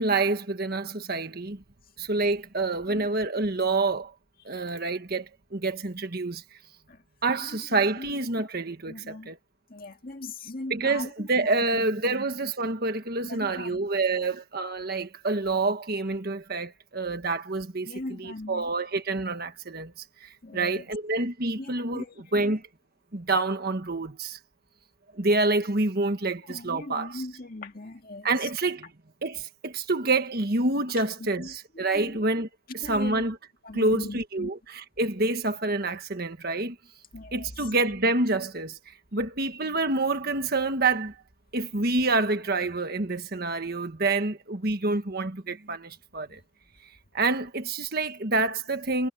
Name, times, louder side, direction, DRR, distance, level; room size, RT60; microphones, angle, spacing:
voice 1, 0.0-1.6 2.0-4.1 4.4-6.6 7.2-9.4 10.7-17.9 18.2-19.9 20.2-22.0 22.3-22.6 23.1-24.4 25.1-27.2 28.2-28.9 29.2-32.5 32.7-33.4 33.7-36.8 37.3-41.2 41.5-46.4 47.1-49.1, right 3 dB, 50° right, 1.5 m, -27 dB
voice 2, 8.9-9.3 9.7-12.1 13.3-13.8 14.1-14.3 17.8-18.7 20.4-20.8 21.5-22.6 26.5-28.5 31.2-32.2 32.8-33.2 33.6-34.5 37.1-37.7 46.3-46.4, left 2 dB, 45° left, 2.0 m, -40 dB
head